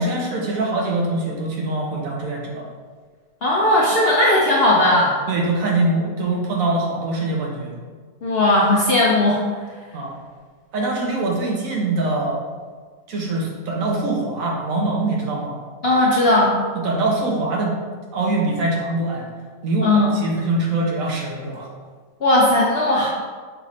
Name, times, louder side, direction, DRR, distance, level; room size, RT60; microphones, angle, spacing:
voice 1, 0.0-2.7 5.3-7.8 9.9-10.2 10.7-12.4 13.1-15.6 16.8-17.8 18.1-19.3 19.6-21.7, right 2 dB, 65° right, -1 dB, 1.1 m, -23 dB
voice 2, 3.4-5.1 8.2-9.4 15.8-16.6 19.8-20.2 22.2-23.1, left 1 dB, 60° left, -4 dB, 0.6 m, -17 dB
5.7 x 3.1 x 2.7 m, 1.5 s
omnidirectional pair, 1.6 m